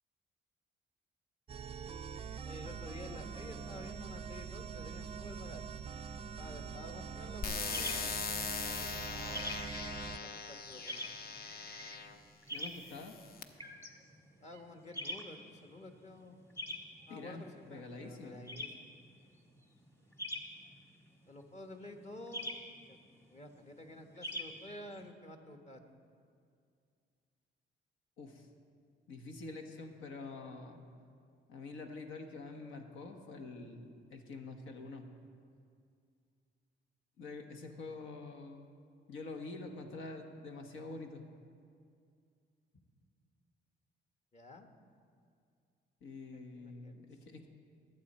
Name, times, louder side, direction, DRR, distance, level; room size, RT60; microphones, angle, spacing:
sound 1, 1.5-10.2, right 6 dB, 30° right, 0.4 m, -44 dB
voice 1, 2.4-5.6 6.4-9.6 10.2-11.1 14.4-16.4 17.1-18.7 19.2-19.3 21.3-22.6 22.9-23.0 23.3-25.9 44.3-44.7 46.3-46.9, left 1 dB, 35° left, 4 dB, 1.3 m, -51 dB
sound 2, 7.4-12.2 12.9-13.4, left 5 dB, 50° left, 0.8 m, -40 dB
sound 3, 7.5-25.1, left 1 dB, 15° left, 1.4 m, -46 dB
voice 2, 12.5-13.2 17.1-18.5 28.2-28.5 29.1-30.8 31.5-35.1 37.2-38.7 39.1-41.2 46.0-47.4, left 3 dB, 85° left, 5 dB, 1.2 m, -46 dB
21.0 x 8.1 x 4.3 m, 2.3 s
cardioid pair, 90°, 20 cm